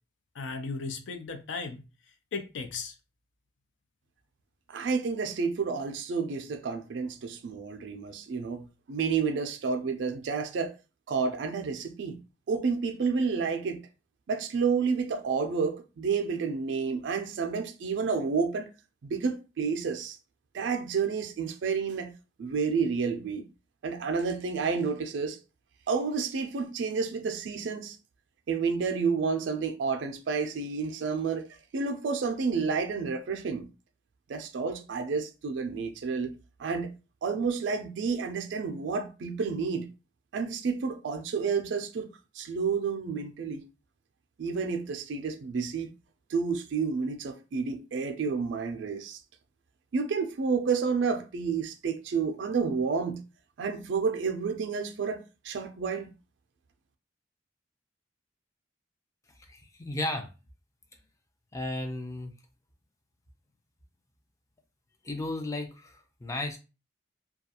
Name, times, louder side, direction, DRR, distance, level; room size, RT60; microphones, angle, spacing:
voice 1, 0.3-3.0, left 4 dB, 80° left, 0.5 m, -37 dB
voice 2, 4.7-10.7 11.1-12.2 12.5-13.8 14.3-18.7 19.1-20.2 20.5-22.1 22.4-23.5 23.8-25.4 25.9-28.0 28.5-33.7 34.3-36.3 36.6-36.9 37.2-39.9 40.3-42.1 42.3-43.6 44.4-45.9 46.3-49.2 49.9-53.2 53.6-56.1, right 5 dB, 70° right, 0.4 m, -30 dB
voice 3, 59.4-60.3 61.5-62.3 65.0-66.6, left 2 dB, 15° left, 0.4 m, -34 dB
2.3 x 2.3 x 2.8 m
head